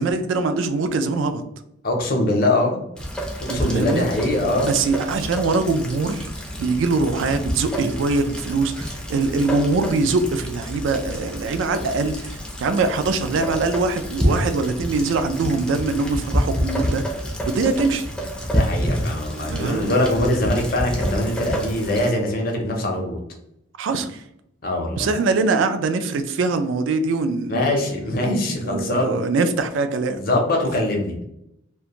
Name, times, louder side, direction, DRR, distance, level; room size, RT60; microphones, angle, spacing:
voice 1, 0.0-1.4 3.5-4.1 4.6-6.3 6.6-17.0 17.5-18.1 19.4-20.0 23.8-24.2 25.0-27.8 28.6-30.2, right 3 dB, 70° right, 10 dB, 0.3 m, -23 dB
voice 2, 1.8-2.8 3.5-4.7 18.5-23.2 24.6-25.1 27.5-29.1 30.2-31.3, left 1 dB, 50° left, 2 dB, 0.6 m, -22 dB
Rain, 3.0-22.1, equal, 5° left, 0.4 m, -28 dB
2.4 x 2.2 x 2.8 m, 0.80 s
head